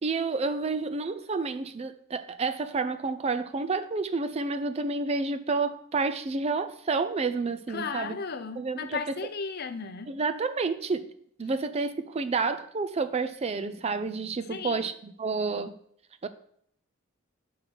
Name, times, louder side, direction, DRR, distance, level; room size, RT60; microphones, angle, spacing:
voice 1, 0.0-8.2 8.6-9.0 10.1-11.1 11.4-15.7 16.2-16.3, right 4 dB, 30° right, 0.4 m, -30 dB
voice 2, 7.7-10.1 14.5-14.9, left 5 dB, 45° left, 0.6 m, -35 dB
5.6 x 5.4 x 5.9 m
head